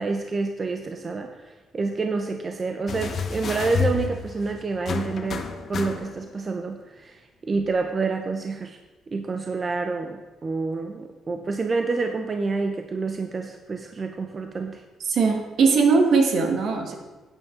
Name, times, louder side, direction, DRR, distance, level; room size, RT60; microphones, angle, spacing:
voice 1, 0.0-8.8 9.1-14.8, right 4 dB, 35° right, 5 dB, 0.8 m, -28 dB
sound 1, 2.9-6.4 7.6-7.7, left 5 dB, 55° left, 1.1 m, -30 dB
voice 2, 15.1-17.0, right 4 dB, 65° right, 3 dB, 1.8 m, -20 dB
11.5 x 9.1 x 3.9 m, 1.2 s
cardioid pair, 90°, 0 cm